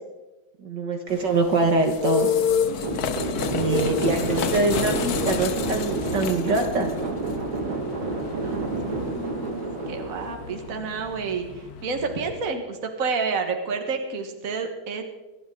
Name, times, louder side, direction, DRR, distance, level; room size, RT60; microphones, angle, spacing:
voice 1, 0.6-2.3 3.5-6.9, right 3 dB, 60° right, 4 dB, 2.1 m, -24 dB
sound 1, 1.1-12.5, left 7 dB, 55° left, 1.2 m, -30 dB
sound 2, 2.8-11.1, right 3 dB, 85° right, 3.2 m, -30 dB
voice 2, 8.1-15.0, right 4 dB, 45° right, 4 dB, 1.9 m, -30 dB
26.0 x 11.0 x 3.9 m, 1.1 s
omnidirectional pair, 2.2 m